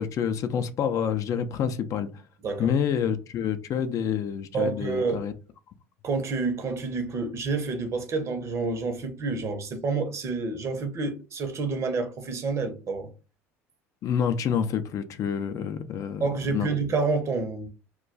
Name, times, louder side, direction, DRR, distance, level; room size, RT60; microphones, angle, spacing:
voice 1, 0.0-2.1 2.6-5.3 14.0-16.2 16.5-16.7, left 8 dB, 45° left, 0.4 m, -27 dB
voice 2, 4.5-5.2 6.0-13.1 16.2-17.7, right 4 dB, 40° right, 0.7 m, -28 dB
2.3 x 2.2 x 3.8 m
hypercardioid pair, 75°, 7 cm